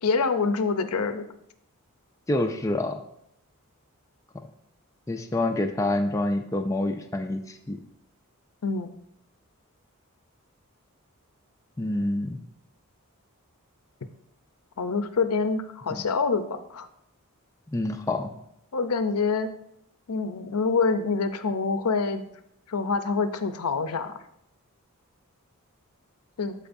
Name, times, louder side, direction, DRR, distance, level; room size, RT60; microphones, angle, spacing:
voice 1, 0.0-1.2 8.6-8.9 14.8-16.9 18.7-19.5 20.1-22.2 22.7-24.1 26.4-26.5, left 4 dB, 85° left, 10 dB, 0.6 m, -26 dB
voice 2, 2.3-3.0 5.1-7.8 11.8-12.4 15.9-16.0 17.7-18.3, left 1 dB, 15° left, 5 dB, 0.3 m, -27 dB
14.0 x 4.6 x 2.6 m, 0.75 s
head